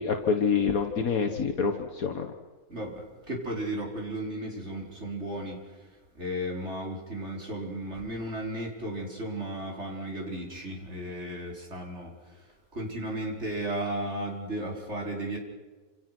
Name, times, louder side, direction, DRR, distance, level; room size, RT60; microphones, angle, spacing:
voice 1, 0.0-2.3, left 5 dB, 70° left, 4 dB, 1.9 m, -26 dB
voice 2, 2.7-5.6 6.2-12.1 12.7-15.4, right 1 dB, 45° right, -1 dB, 5.4 m, -34 dB
28.0 x 27.5 x 6.1 m, 1.3 s
omnidirectional pair, 1.6 m